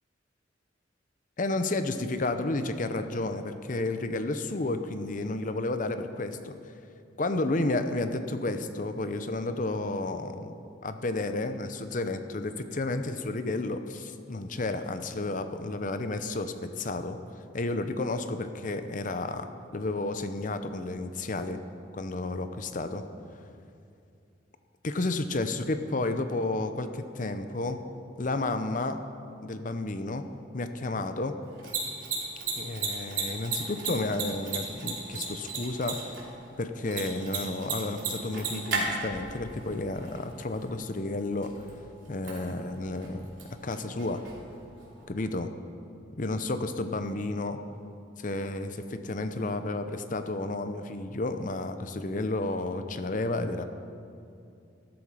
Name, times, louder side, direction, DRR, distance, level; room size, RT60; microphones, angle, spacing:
voice 1, 1.4-6.5 7.2-10.5 10.8-17.2 17.5-21.6 21.9-23.0 24.8-27.8 28.2-29.0 29.4-30.3 30.5-31.3 32.6-36.0 36.6-41.5 42.1-43.2 43.6-44.2 45.1-45.5 46.2-47.6 48.2-53.6, left 2 dB, 45° left, 9 dB, 0.7 m, -31 dB
Mechanisms, 31.4-45.0, right 4 dB, 80° right, 3.1 m, -37 dB
13.0 x 12.0 x 4.9 m, 2.6 s
head